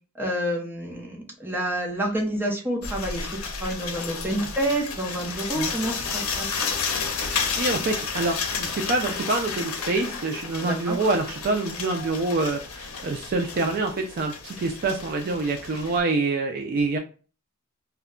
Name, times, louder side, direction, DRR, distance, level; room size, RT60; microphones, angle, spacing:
voice 1, 0.2-3.3 3.6-6.5 10.6-11.0, right 1 dB, 10° right, -1 dB, 0.7 m, -28 dB
sound 1, 2.8-16.0, left 5 dB, 80° left, 0.6 m, -32 dB
voice 2, 7.6-17.0, right 3 dB, 45° right, 3 dB, 0.3 m, -26 dB
2.2 x 2.1 x 3.6 m, 0.36 s
head